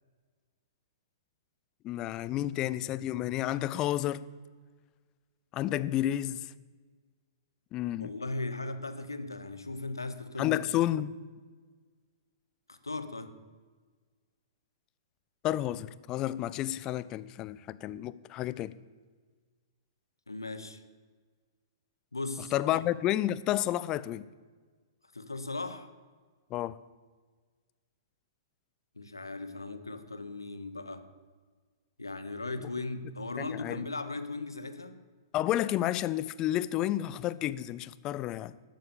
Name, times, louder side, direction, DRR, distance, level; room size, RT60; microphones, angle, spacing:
voice 1, 1.8-4.2 5.5-6.5 7.7-8.1 10.4-11.1 15.4-18.8 22.5-24.2 26.5-26.8 33.4-33.8 35.3-38.5, left 13 dB, 30° left, 0.4 m, -31 dB
voice 2, 8.0-10.6 12.7-13.3 20.3-20.8 22.1-22.5 25.1-25.9 29.0-31.1 32.0-35.0, left 3 dB, 85° left, 1.0 m, -37 dB
12.0 x 7.7 x 7.0 m
figure-of-eight pair, 110°, 2 cm